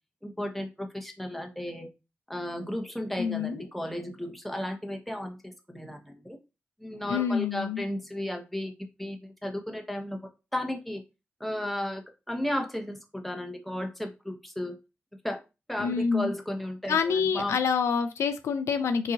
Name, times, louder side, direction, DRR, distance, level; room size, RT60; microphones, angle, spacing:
voice 1, 0.2-1.9 2.3-6.4 6.8-8.7 9.0-10.2 10.5-11.0 11.4-12.0 12.3-14.8 15.2-15.4 15.7-17.6, left 1 dB, ahead, 1.0 m, -34 dB
voice 2, 3.2-3.7 7.1-7.8 15.8-16.3 16.9-19.1, left 6 dB, 85° left, 0.4 m, -27 dB
3.8 x 2.6 x 2.8 m
cardioid pair, 45°, 5 cm